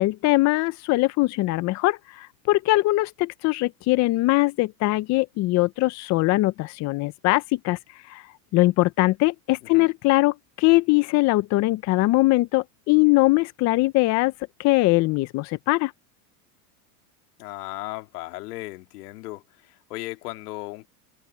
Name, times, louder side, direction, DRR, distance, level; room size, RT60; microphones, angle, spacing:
voice 1, 0.0-7.8 8.1-8.2 8.5-14.3 14.6-15.9, left 20 dB, 35° left, 0.6 m, -21 dB
voice 2, 17.4-20.9, left 20 dB, 75° left, 2.4 m, -36 dB
supercardioid pair, 130°, 46 cm